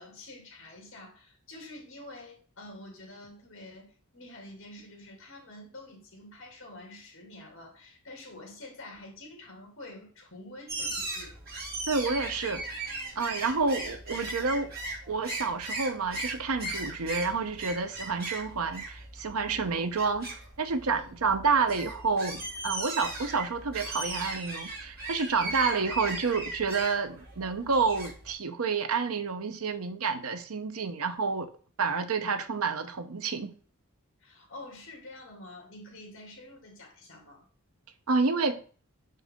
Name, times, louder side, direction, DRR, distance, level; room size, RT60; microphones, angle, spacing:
voice 1, 0.0-11.3 19.5-19.8 20.9-21.3 25.6-25.9 34.2-37.5, left 1 dB, 60° left, 2.4 m, -47 dB
sound 1, 10.7-28.3, right 2 dB, 45° right, 2.7 m, -38 dB
voice 2, 11.9-12.6 13.2-14.7 15.1-31.5 31.8-33.5 38.1-38.6, right 4 dB, 85° right, 0.8 m, -29 dB
6.4 x 5.5 x 3.6 m
head